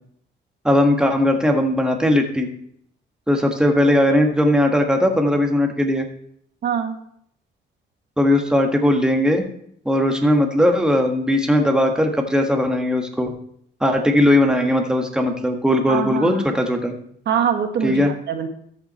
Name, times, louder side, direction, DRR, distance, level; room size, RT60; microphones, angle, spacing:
voice 1, 0.6-2.5 3.3-6.0 8.2-9.4 9.8-13.3 13.8-16.9 17.8-18.1, left 1 dB, 5° right, 3 dB, 1.5 m, -18 dB
voice 2, 6.6-7.0 15.9-16.5 17.3-18.5, right 7 dB, 60° right, 5 dB, 1.3 m, -23 dB
13.5 x 5.9 x 4.3 m, 0.67 s
cardioid pair, 90°, 20 cm